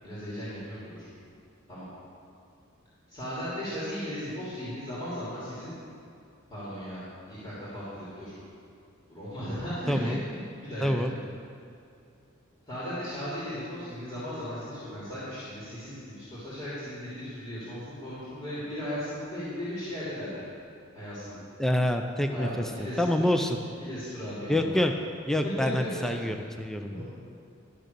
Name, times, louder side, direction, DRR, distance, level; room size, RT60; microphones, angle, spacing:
voice 1, 0.0-1.0 1.7-1.8 3.1-5.7 6.5-8.3 9.1-11.2 12.7-20.4 20.9-21.4 22.3-23.3 23.8-24.8 25.4-26.3 26.9-27.1, equal, 25° left, -11 dB, 3.0 m, -36 dB
voice 2, 9.9-10.2 10.8-11.1 21.6-22.6 23.0-23.6 24.5-24.9 25.3-27.0, left 1 dB, ahead, 5 dB, 0.4 m, -26 dB
12.0 x 6.5 x 6.7 m, 2.5 s
head